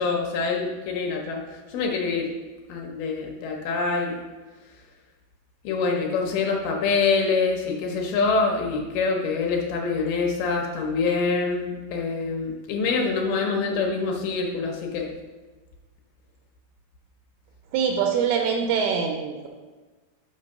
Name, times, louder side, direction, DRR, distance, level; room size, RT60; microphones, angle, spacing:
voice 1, 0.0-2.3 2.7-4.2 5.6-15.1, left 4 dB, 75° left, 1 dB, 2.4 m, -25 dB
voice 2, 17.7-19.5, right 6 dB, 80° right, 3 dB, 2.3 m, -24 dB
5.9 x 4.6 x 6.4 m, 1.3 s
omnidirectional pair, 4.8 m